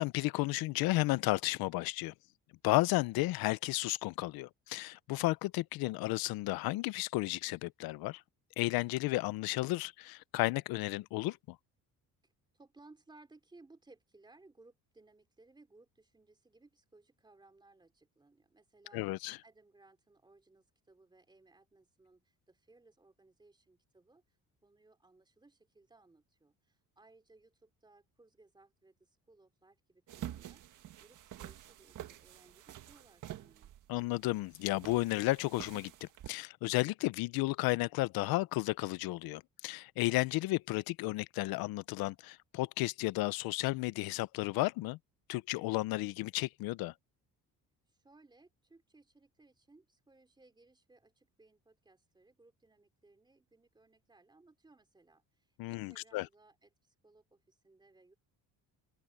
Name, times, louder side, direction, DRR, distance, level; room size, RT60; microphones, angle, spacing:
voice 1, 0.0-2.1 2.6-8.2 8.6-11.6 18.9-19.4 33.9-45.0 45.3-46.9 55.6-56.3, left 20 dB, 85° left, 0.6 m, -33 dB
voice 2, 12.2-19.0 19.4-24.4 24.6-30.6 31.0-33.7 47.9-58.1, right 2 dB, 10° right, 3.2 m, -63 dB
sound 1, 30.1-36.3, right 12 dB, 60° right, 1.8 m, -48 dB
open air
cardioid pair, 145°, 35 cm